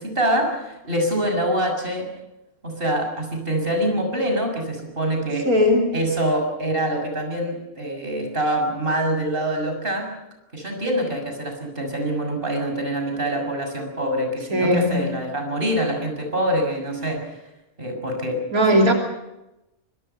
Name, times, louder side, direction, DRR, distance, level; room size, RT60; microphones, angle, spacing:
voice 1, 0.0-2.1 2.6-5.5 5.9-10.1 10.5-17.4 17.8-18.5, right 1 dB, 40° right, 4 dB, 6.8 m, -25 dB
voice 2, 5.5-6.0 14.5-15.1 18.5-18.9, equal, 85° right, 1 dB, 3.7 m, -18 dB
26.5 x 24.0 x 5.7 m, 0.93 s
omnidirectional pair, 1.5 m